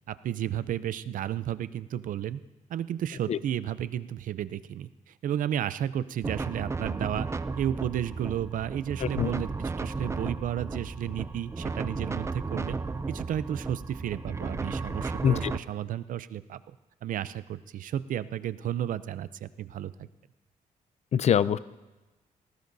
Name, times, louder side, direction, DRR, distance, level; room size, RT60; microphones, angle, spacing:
voice 1, 0.1-2.4 2.7-7.3 7.6-12.8 13.1-16.7 17.0-20.1, right 10 dB, 75° right, 15 dB, 0.5 m, -33 dB
sound 1, 6.2-15.6, right 3 dB, 20° right, 0.5 m, -34 dB
voice 2, 9.0-9.3 15.2-15.5 21.1-21.6, left 8 dB, 50° left, 17 dB, 0.4 m, -24 dB
19.5 x 18.0 x 2.7 m, 1.1 s
cardioid pair, 100°, 14 cm